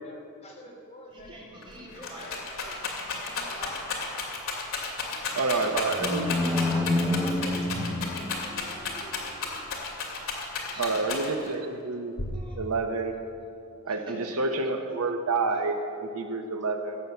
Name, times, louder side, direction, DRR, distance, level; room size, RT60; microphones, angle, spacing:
voice 1, 0.0-3.0 3.4-4.3 5.5-9.9 10.9-11.4, equal, 30° left, -2 dB, 2.7 m, -46 dB
voice 2, 1.1-4.2 4.9-5.8 10.1-11.4 12.3-12.6 13.9-14.4 15.5-15.6, equal, 25° right, -4 dB, 3.5 m, -49 dB
Rattle, 1.2-1.3 1.6-11.5 12.2-12.8, left 4 dB, 65° left, 2.5 m, -33 dB
voice 3, 5.4-6.3 10.8-12.1 12.6-13.1 13.8-17.0, right 3 dB, 75° right, 6 dB, 0.9 m, -28 dB
sound 1, 5.6-8.9, left 1 dB, 5° right, 1.0 m, -28 dB
17.0 x 7.1 x 7.9 m, 2.5 s
head